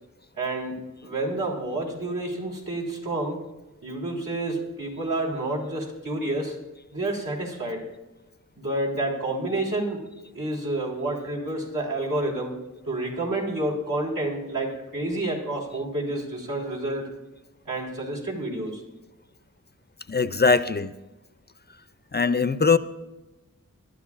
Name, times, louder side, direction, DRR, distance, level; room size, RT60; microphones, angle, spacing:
voice 1, 0.4-3.4 3.8-6.6 6.9-7.8 8.6-10.0 10.3-12.6 12.9-17.1 17.7-18.8, right 2 dB, 80° right, -4 dB, 3.5 m, -29 dB
voice 2, 20.1-20.9 22.1-22.8, left 4 dB, 30° left, 13 dB, 0.5 m, -21 dB
22.0 x 12.0 x 2.5 m, 1.1 s
wide cardioid pair, 55°, 32 cm